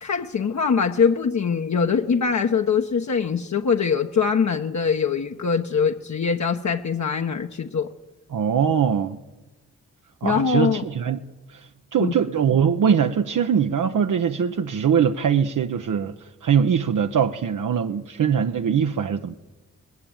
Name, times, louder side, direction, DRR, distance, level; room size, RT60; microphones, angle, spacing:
voice 1, 0.0-7.9 10.2-10.9 12.0-12.1, left 6 dB, 60° left, 1.2 m, -22 dB
voice 2, 8.3-9.2 10.2-11.2 11.5-19.3, right 7 dB, 70° right, 0.9 m, -22 dB
20.5 x 20.0 x 8.9 m
cardioid pair, 65°, 32 cm